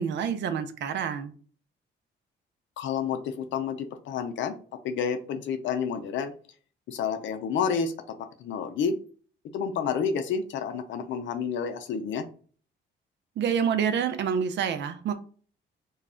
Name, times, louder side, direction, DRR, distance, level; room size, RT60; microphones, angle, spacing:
voice 1, 0.0-1.3 13.4-15.1, right 7 dB, 65° right, 9 dB, 0.5 m, -27 dB
voice 2, 2.8-4.5 4.8-6.3 6.9-8.9 9.5-12.2, left 6 dB, 70° left, 7 dB, 0.5 m, -30 dB
2.3 x 2.0 x 3.6 m, 0.42 s
cardioid pair, 90°, 20 cm